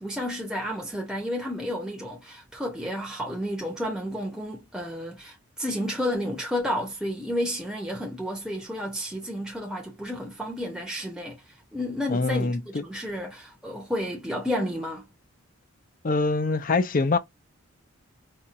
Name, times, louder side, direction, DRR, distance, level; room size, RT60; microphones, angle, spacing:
voice 1, 0.0-15.1, equal, 5° right, 0.7 m, -31 dB
voice 2, 12.1-12.8 16.0-17.2, left 3 dB, 40° left, 0.5 m, -24 dB
4.3 x 2.2 x 2.5 m
head